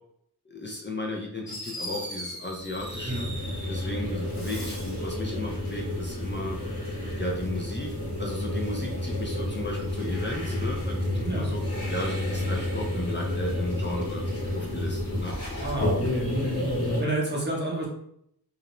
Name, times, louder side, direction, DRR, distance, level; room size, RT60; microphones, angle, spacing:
voice 1, 0.5-3.3 3.7-6.6 7.2-11.0 11.3-11.6 11.9-14.3 14.5-15.4, left 1 dB, 30° left, 0 dB, 0.5 m, -35 dB
Fireworks, 1.5-3.9 4.2-5.1, equal, 45° left, 0.8 m, -39 dB
sound 1, 2.6-17.0, left 1 dB, 90° left, 1.1 m, -30 dB
voice 2, 11.2-11.5 15.6-16.6 17.0-17.9, right 2 dB, 30° right, -4 dB, 0.8 m, -30 dB
2.5 x 2.0 x 2.9 m, 0.72 s
wide cardioid pair, 45°, 38 cm